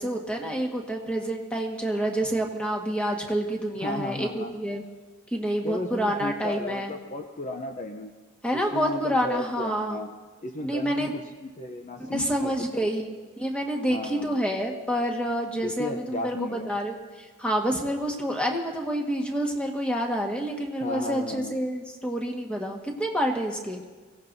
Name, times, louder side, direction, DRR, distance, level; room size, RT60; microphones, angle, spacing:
voice 1, 0.0-4.8 5.3-6.9 8.4-10.0 10.6-11.1 12.1-23.8, equal, 5° left, 0 dB, 1.6 m, -28 dB
voice 2, 3.8-4.5 5.6-8.1 8.5-10.1 10.4-12.5 13.9-14.4 15.6-16.8 20.8-21.6, left 1 dB, 35° left, 4 dB, 0.7 m, -34 dB
24.0 x 17.0 x 2.7 m, 1.4 s
head